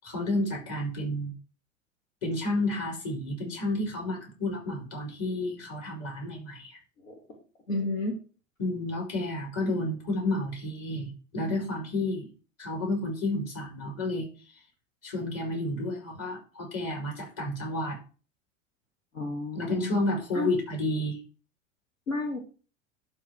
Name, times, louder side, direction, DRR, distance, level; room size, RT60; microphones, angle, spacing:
voice 1, 0.0-1.3 2.2-6.8 8.6-12.3 12.6-14.3 15.0-18.0 19.6-21.2, left 1 dB, 40° left, -1 dB, 5.3 m, -31 dB
voice 2, 7.7-8.2 19.1-20.0 20.3-20.5 22.1-22.4, left 2 dB, 85° left, 2 dB, 1.8 m, -31 dB
11.5 x 3.9 x 4.8 m, 0.36 s
figure-of-eight pair, 85°, 39 cm